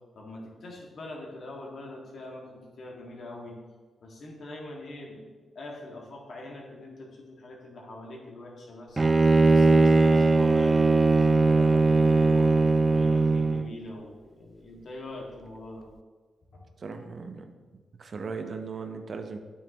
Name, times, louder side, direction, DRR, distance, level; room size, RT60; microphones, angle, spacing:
voice 1, 0.1-3.6 4.0-5.3 5.6-12.5 12.9-15.9 16.5-16.7, left 1 dB, 65° left, -1 dB, 1.8 m, -43 dB
Bowed string instrument, 9.0-13.7, right 3 dB, 30° right, 0.3 m, -20 dB
voice 2, 16.8-19.4, right 4 dB, 55° right, 6 dB, 0.8 m, -38 dB
9.1 x 6.6 x 2.9 m, 1.4 s
supercardioid pair, 50°, 0 cm